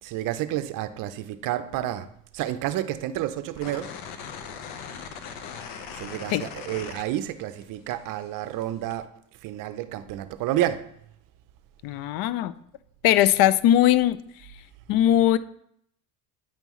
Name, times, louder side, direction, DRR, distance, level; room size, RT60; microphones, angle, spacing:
voice 1, 0.0-2.1 2.3-3.9 6.0-9.1 9.4-10.9, right 13 dB, 55° right, 0.5 m, -30 dB
sound 1, 3.6-7.6 7.9-9.0, left 7 dB, 75° left, 1.0 m, -39 dB
voice 2, 11.8-12.5 13.0-14.2 14.9-15.4, left 12 dB, 60° left, 0.5 m, -20 dB
9.0 x 5.3 x 3.1 m
cardioid pair, 130°, 40 cm